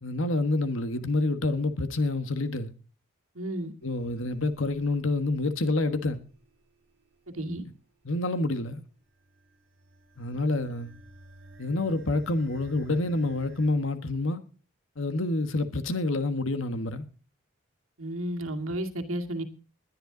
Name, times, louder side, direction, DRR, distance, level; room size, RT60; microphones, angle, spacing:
voice 1, 0.0-2.7 3.8-6.2 8.0-8.8 10.2-10.9 11.6-14.4 15.0-17.0, left 2 dB, 70° left, 1.4 m, -28 dB
voice 2, 3.4-3.7 7.3-7.6 18.0-19.4, right 1 dB, 85° right, 2.2 m, -32 dB
sound 1, 3.8-13.7, right 2 dB, 60° right, 3.8 m, -55 dB
20.5 x 10.0 x 3.9 m
head